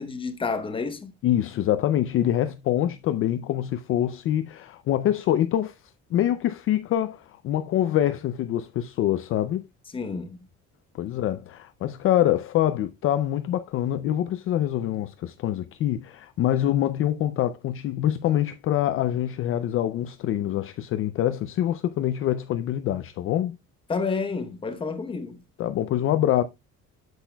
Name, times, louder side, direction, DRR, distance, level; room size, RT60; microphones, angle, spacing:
voice 1, 0.0-1.1 9.9-10.4 23.9-25.4, left 4 dB, 15° left, 0.9 m, -30 dB
voice 2, 1.2-5.8 6.1-9.6 11.0-23.6 25.6-26.4, left 12 dB, 45° left, 0.4 m, -25 dB
8.3 x 8.0 x 2.2 m
cardioid pair, 175°, 31 cm